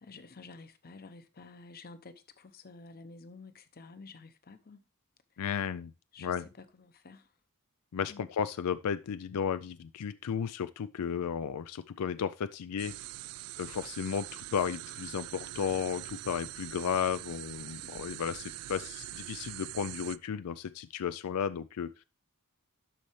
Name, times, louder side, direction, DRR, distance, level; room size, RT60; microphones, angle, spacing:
voice 1, 0.0-4.8 5.3-5.4 6.1-7.3 8.1-8.3, left 3 dB, 45° left, 0.8 m, -51 dB
voice 2, 5.4-5.9 6.2-6.4 7.9-12.9 13.6-22.0, left 7 dB, 90° left, 0.4 m, -34 dB
sound 1, 12.8-20.2, right 16 dB, 75° right, 0.3 m, -43 dB
12.0 x 4.2 x 3.2 m
head